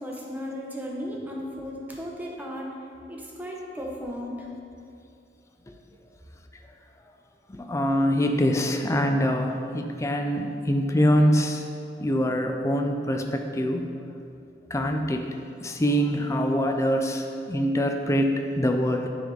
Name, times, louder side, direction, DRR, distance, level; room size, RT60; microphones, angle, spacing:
voice 1, 0.0-2.7 3.1-4.4, equal, 10° right, -3 dB, 0.8 m, -35 dB
voice 2, 7.5-11.7 12.0-13.9 14.7-15.3 15.6-19.1, equal, 15° left, 4 dB, 0.4 m, -24 dB
9.7 x 3.6 x 3.8 m, 2.5 s
head